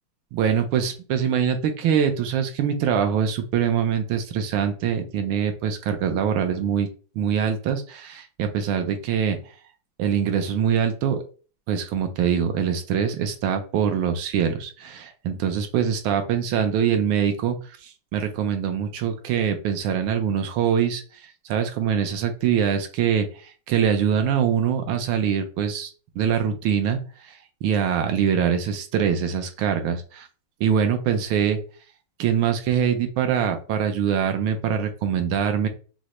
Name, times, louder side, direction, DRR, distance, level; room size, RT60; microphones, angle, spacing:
voice 1, 0.3-6.9 7.2-9.4 10.0-11.2 11.7-25.9 26.1-30.3 30.6-31.6 32.2-35.7, right 8 dB, 75° right, 6 dB, 1.4 m, -24 dB
6.2 x 2.1 x 2.9 m, 0.37 s
omnidirectional pair, 2.3 m